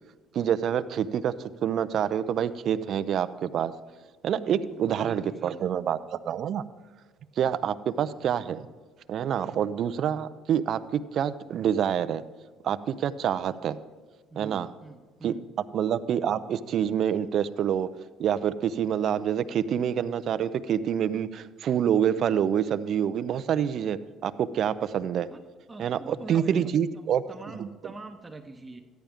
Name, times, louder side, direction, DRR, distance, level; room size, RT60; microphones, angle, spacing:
voice 1, 0.3-1.3 1.6-3.7 4.2-6.6 7.4-8.7 9.1-12.2 12.6-13.8 14.4-14.7 15.2-15.3 15.7-17.9 18.2-25.3 25.8-27.2 27.6-27.7, right 9 dB, 60° right, 14 dB, 0.5 m, -27 dB
voice 2, 4.3-5.7 14.3-15.5 25.3-25.4 25.7-28.8, right 3 dB, 20° right, 4 dB, 0.8 m, -44 dB
13.5 x 10.5 x 3.6 m, 1.5 s
supercardioid pair, 75°, 0 cm